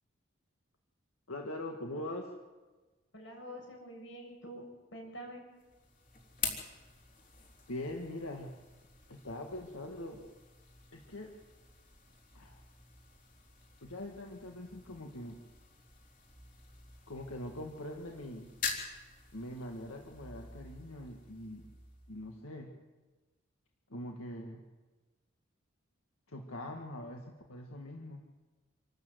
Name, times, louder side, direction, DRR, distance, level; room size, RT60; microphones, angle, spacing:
voice 1, 1.3-2.3 7.7-8.5 9.1-10.2 10.9-11.3 12.3-12.6 13.8-15.4 17.1-18.5 19.3-21.7 22.1-22.7 23.9-24.6 26.3-28.2, left 1 dB, 90° left, 2 dB, 2.0 m, -42 dB
voice 2, 3.1-5.4, equal, 65° left, 1 dB, 6.8 m, -47 dB
sound 1, 5.6-22.5, left 5 dB, 40° left, 3.7 m, -46 dB
27.0 x 13.0 x 8.0 m, 1.2 s
head